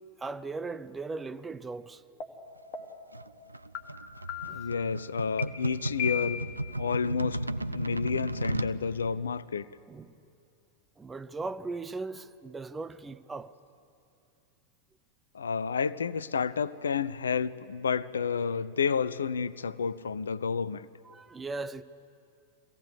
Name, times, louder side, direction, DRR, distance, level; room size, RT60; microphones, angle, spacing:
voice 1, 0.2-2.0 4.5-4.6 9.9-10.2 11.0-13.5 21.0-21.8, right 3 dB, 15° right, 0.5 m, -38 dB
sound 1, 2.2-2.3 2.7-3.1 3.7-3.8 4.3-4.7 5.4-5.5 6.0-6.6, left 8 dB, 40° left, 1.9 m, -35 dB
sound 2, 3.1-8.8, right 1 dB, 85° right, 0.4 m, -34 dB
voice 2, 4.5-6.4 6.8-7.5 7.7-9.7 15.3-20.9, left 6 dB, 70° left, 0.4 m, -30 dB
23.0 x 16.5 x 8.2 m
figure-of-eight pair, 90°, 0 cm